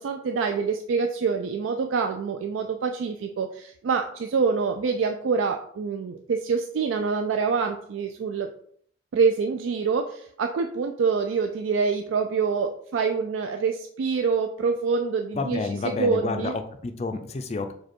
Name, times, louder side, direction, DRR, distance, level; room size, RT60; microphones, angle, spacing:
voice 1, 0.0-8.5 9.1-16.5, right 5 dB, 85° right, 5 dB, 0.3 m, -26 dB
voice 2, 15.3-17.7, left 3 dB, 35° left, 7 dB, 0.4 m, -30 dB
5.0 x 2.3 x 4.3 m, 0.63 s
head